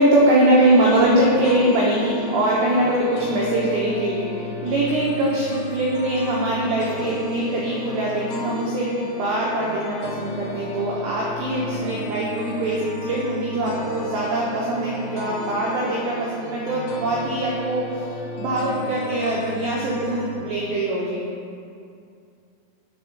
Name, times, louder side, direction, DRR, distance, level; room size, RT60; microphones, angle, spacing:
voice 1, 0.0-4.3 4.6-18.1 18.4-21.2, right 1 dB, 90° right, -4 dB, 2.4 m, -22 dB
sound 1, 0.6-20.4, left 1 dB, 85° left, 2.4 m, -35 dB
8.3 x 3.8 x 5.8 m, 2.5 s
omnidirectional pair, 5.9 m